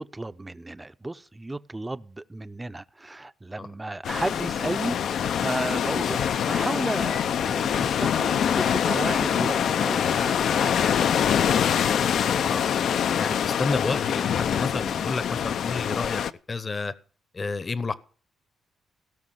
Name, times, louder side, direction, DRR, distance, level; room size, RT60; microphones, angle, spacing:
voice 1, 0.0-11.4 12.2-12.6, right 2 dB, 15° right, 0.6 m, -34 dB
sound 1, 4.0-16.3, left 8 dB, 70° left, 0.6 m, -24 dB
Meow / Water / Bathtub (filling or washing), 4.2-10.4, left 7 dB, 85° left, 3.7 m, -49 dB
voice 2, 13.1-16.2 16.5-16.9 17.3-17.9, left 3 dB, 30° left, 0.9 m, -30 dB
17.0 x 6.1 x 7.7 m
cardioid pair, 125°, 0 cm